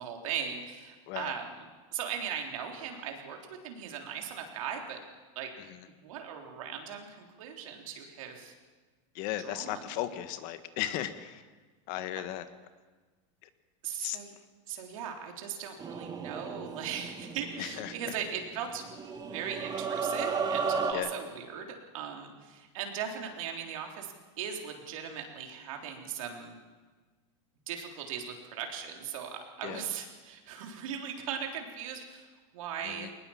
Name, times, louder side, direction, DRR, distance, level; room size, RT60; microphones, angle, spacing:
voice 1, 0.0-3.4 3.6-5.0 5.4-5.5 6.0-8.5 9.4-10.0 13.8-14.3 14.7-26.6 27.7-33.1, right 8 dB, 80° right, 2 dB, 3.7 m, -39 dB
voice 2, 9.1-11.4 11.9-12.5 14.0-14.2 17.6-18.0 20.9-21.1 29.6-29.8 32.8-33.1, left 13 dB, 55° left, 11 dB, 1.6 m, -35 dB
sound 1, 15.8-18.3 18.7-20.9, right 5 dB, 25° right, 1.8 m, -34 dB
21.0 x 20.0 x 7.3 m, 1.4 s
supercardioid pair, 125°, 17 cm